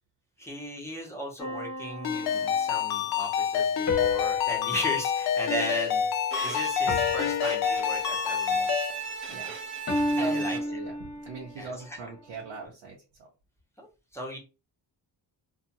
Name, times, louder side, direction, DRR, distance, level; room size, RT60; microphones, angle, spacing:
voice 1, 0.4-6.1 6.4-8.7 9.3-9.4 10.2-10.6 11.6-12.0 13.8-13.9 14.1-14.4, equal, 5° left, -2 dB, 0.8 m, -36 dB
sound 1, 1.4-2.8 3.9-6.4 6.9-8.5 9.9-11.6, left 4 dB, 35° left, 0.9 m, -32 dB
Ringtone, 2.0-8.9, left 8 dB, 60° left, 0.5 m, -28 dB
Bowed string instrument, 6.3-10.9, right 6 dB, 30° right, 0.6 m, -37 dB
voice 2, 10.1-10.9 11.2-13.3, right 3 dB, 75° right, -3 dB, 0.8 m, -40 dB
2.5 x 2.3 x 2.7 m, 0.30 s
wide cardioid pair, 145°, 43 cm